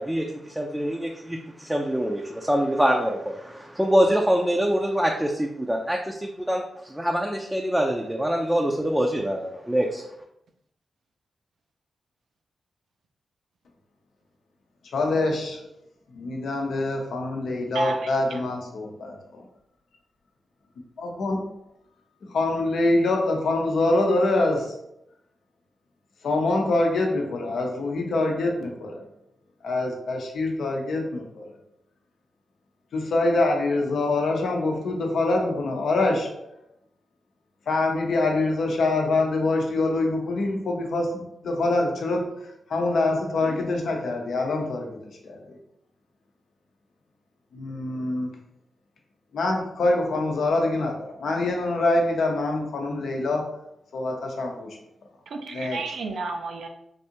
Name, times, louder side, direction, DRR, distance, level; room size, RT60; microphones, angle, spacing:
voice 1, 0.0-10.0, equal, 10° right, 0 dB, 0.5 m, -25 dB
voice 2, 14.9-15.7 16.1-19.1 21.0-21.5 22.3-24.8 26.2-29.0 29.6-31.5 32.9-36.5 37.7-45.4 47.5-48.3 49.3-53.6 53.9-54.8 55.5-55.8, left 2 dB, 75° left, 1 dB, 0.6 m, -25 dB
voice 3, 17.7-18.4 55.3-56.7, right 3 dB, 75° right, 4 dB, 0.5 m, -31 dB
3.3 x 2.6 x 2.8 m, 0.79 s
supercardioid pair, 45°, 0 cm